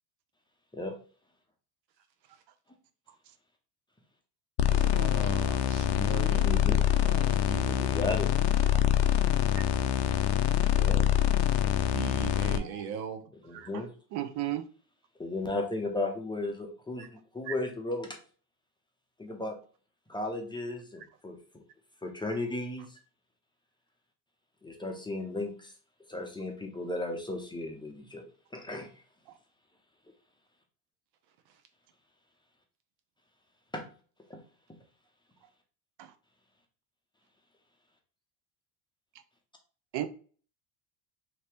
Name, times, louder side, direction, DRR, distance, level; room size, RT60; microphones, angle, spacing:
sound 1, 4.6-12.6, left 10 dB, 60° left, 0.5 m, -25 dB
voice 1, 4.7-6.6 7.0-7.9 11.9-13.2, right 8 dB, 90° right, 0.8 m, -39 dB
voice 2, 6.4-6.8 7.8-8.3 10.7-11.0 13.4-13.9 15.2-17.1 17.3-18.2 19.2-19.5 20.1-21.6 22.0-23.0 24.6-25.7 26.1-28.2 28.5-28.9 33.7-33.8 34.3-34.4, left 2 dB, 10° left, 0.6 m, -35 dB
voice 3, 14.1-14.6 17.5-17.6 39.9-40.1, right 14 dB, 60° right, 0.6 m, -33 dB
2.8 x 2.7 x 3.3 m
supercardioid pair, 95°, 48 cm